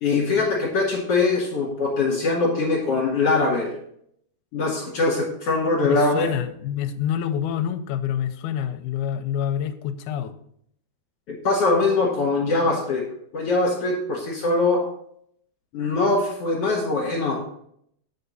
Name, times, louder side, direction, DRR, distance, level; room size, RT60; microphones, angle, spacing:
voice 1, 0.0-3.7 4.5-6.3 11.3-13.0 13.3-14.8 15.7-17.4, left 3 dB, 50° left, -3 dB, 2.2 m, -22 dB
voice 2, 5.8-10.3, left 9 dB, 85° left, 8 dB, 2.5 m, -27 dB
8.5 x 6.8 x 4.1 m, 0.68 s
omnidirectional pair, 4.7 m